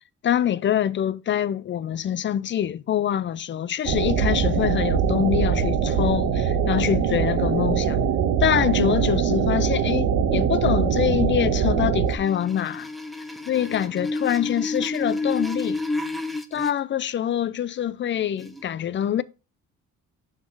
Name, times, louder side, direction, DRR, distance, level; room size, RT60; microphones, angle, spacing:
voice 1, 0.2-8.0 8.4-12.9 13.5-15.8 16.5-19.2, left 10 dB, 40° left, 0.4 m, -25 dB
sound 1, 3.9-12.2, right 7 dB, 85° right, 1.0 m, -22 dB
sound 2, 12.1-16.7 18.4-18.6, left 2 dB, ahead, 0.7 m, -30 dB
6.3 x 3.9 x 4.6 m
cardioid pair, 90°, 30 cm